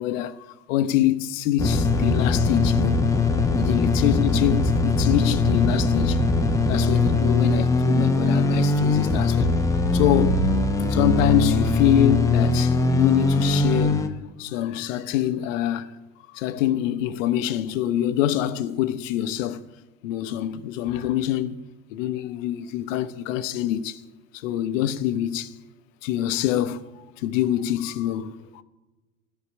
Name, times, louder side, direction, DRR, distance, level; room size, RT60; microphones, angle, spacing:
voice 1, 0.0-3.1 3.6-6.2 6.7-9.5 9.9-10.5 10.9-14.1 14.4-16.0 16.3-19.6 20.0-21.6 21.9-24.0 24.3-25.5 26.0-28.6, left 11 dB, 65° left, 0.9 m, -25 dB
sound 1, 1.6-14.1, left 3 dB, 10° left, 0.8 m, -21 dB
13.5 x 5.8 x 9.6 m
hypercardioid pair, 110°, 41 cm